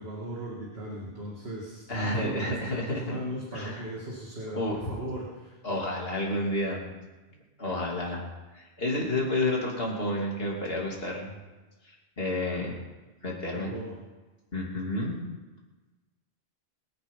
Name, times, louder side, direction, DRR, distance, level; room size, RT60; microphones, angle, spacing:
voice 1, 0.0-5.6 13.5-14.0, equal, 75° right, -4 dB, 2.6 m, -37 dB
voice 2, 1.9-3.2 3.5-3.8 4.5-4.9 5.6-6.9 7.6-8.2 8.5-11.4 12.2-12.8 13.2-13.7 14.5-15.2, left 1 dB, 65° left, -2 dB, 3.3 m, -30 dB
23.5 x 8.9 x 5.6 m, 1.2 s
omnidirectional pair, 1.1 m